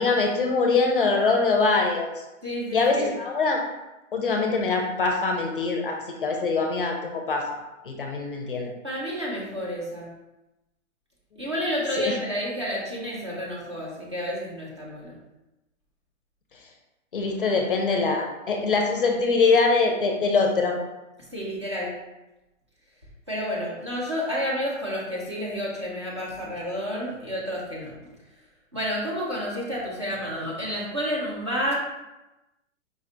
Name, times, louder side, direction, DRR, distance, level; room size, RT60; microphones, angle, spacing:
voice 1, 0.0-2.2 2.7-3.6 4.1-7.5 7.8-8.7 12.0-12.1 17.1-20.8, left 4 dB, 45° left, 2 dB, 0.5 m, -23 dB
voice 2, 2.4-3.1 8.8-10.1 11.4-15.2 21.3-21.9 23.3-28.1 28.7-31.7, equal, 20° right, -5 dB, 0.5 m, -30 dB
5.0 x 2.3 x 3.8 m, 0.99 s
hypercardioid pair, 175°, 39 cm